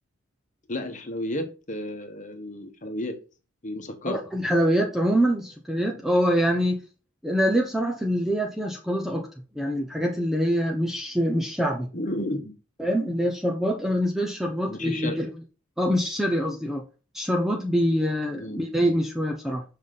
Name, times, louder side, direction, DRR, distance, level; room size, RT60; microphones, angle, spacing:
voice 1, 0.7-3.2 3.6-4.2 11.9-12.5 14.4-15.2 18.4-18.7, left 1 dB, 35° left, 1.3 m, -32 dB
voice 2, 4.0-6.8 7.2-9.3 9.5-11.9 12.8-15.3 15.8-16.9 17.1-19.6, equal, ahead, 0.9 m, -25 dB
7.2 x 5.6 x 3.9 m
head